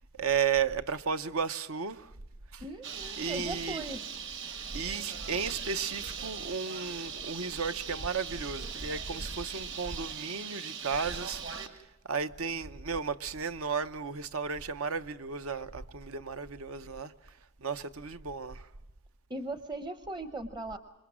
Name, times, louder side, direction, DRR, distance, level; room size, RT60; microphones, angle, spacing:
voice 1, 0.2-2.1 2.5-2.6 3.2-3.8 4.7-11.7 12.0-17.1 17.6-18.6, right 6 dB, 75° right, 0.8 m, -34 dB
voice 2, 2.6-4.0 19.3-20.8, right 2 dB, 20° right, 0.7 m, -38 dB
Bird, 2.8-11.7, right 7 dB, 60° right, 1.9 m, -40 dB
27.0 x 22.0 x 6.1 m
head